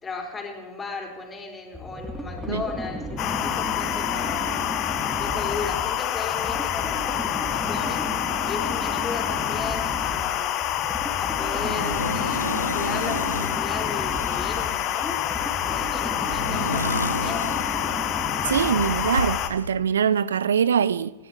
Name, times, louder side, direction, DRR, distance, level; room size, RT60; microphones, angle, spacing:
voice 1, 0.0-4.6 5.0-8.1 8.4-10.6 11.2-17.8, left 4 dB, 15° left, 4.3 m, -36 dB
sound 1, 1.7-19.4, equal, ahead, 1.9 m, -34 dB
sound 2, 3.2-19.5, left 12 dB, 35° left, 1.4 m, -27 dB
sound 3, 9.8-9.9 10.2-10.7 11.6-13.6 14.1-15.5 16.2-18.2 18.8-19.7, left 1 dB, 85° left, 0.9 m, -33 dB
voice 2, 18.5-21.1, right 7 dB, 65° right, 0.4 m, -23 dB
27.0 x 12.0 x 4.5 m
figure-of-eight pair, 90°, 0 cm